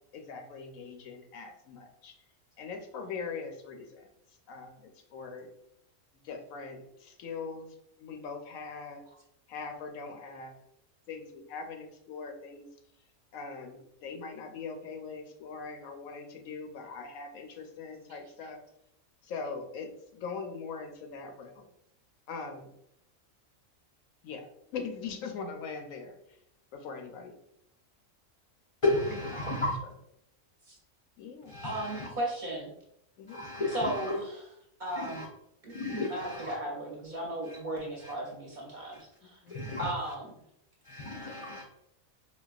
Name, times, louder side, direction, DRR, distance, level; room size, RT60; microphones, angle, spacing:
voice 1, 0.1-2.2 2.6-4.1 4.5-5.5 6.2-9.0 9.5-10.6 11.1-12.7 13.3-18.6 19.2-21.7 22.3-22.7 24.2-26.4 26.7-27.3 29.4-29.5 31.2-31.5 33.2-33.4 39.4-39.6, left 5 dB, 85° left, 1.0 m, -41 dB
voice 2, 28.8-29.8 31.5-32.1 33.3-34.2 34.9-35.3 35.7-36.5 37.4-37.6 38.0-38.1 38.9-39.0 39.5-39.9 40.8-41.6, left 2 dB, 45° left, 0.4 m, -33 dB
voice 3, 31.6-32.7 33.7-34.2 34.8-35.3 35.6-39.4 39.8-40.3, right 1 dB, 45° right, 0.7 m, -35 dB
4.0 x 2.3 x 2.4 m
omnidirectional pair, 1.4 m